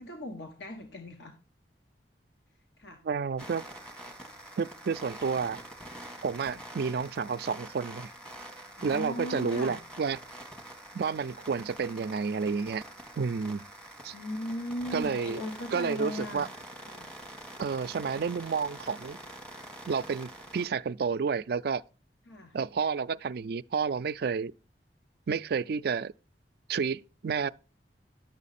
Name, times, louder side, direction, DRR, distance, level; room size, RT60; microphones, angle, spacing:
voice 1, 0.0-1.3 2.8-3.0 6.4-6.6 8.8-9.8 14.0-16.5 16.9-17.1 22.3-22.6, left 1 dB, 80° left, 1.4 m, -38 dB
voice 2, 3.0-3.6 4.6-5.6 6.2-8.1 8.8-10.2 10.9-12.8 13.2-13.6 14.0-14.1 14.9-15.4 15.7-16.5 17.6-19.2 19.9-21.8 22.5-24.5 25.3-26.1 26.7-27.5, right 5 dB, 60° right, 0.4 m, -30 dB
sound 1, 3.4-20.7, right 1 dB, 5° left, 1.6 m, -46 dB
10.5 x 7.2 x 4.1 m
head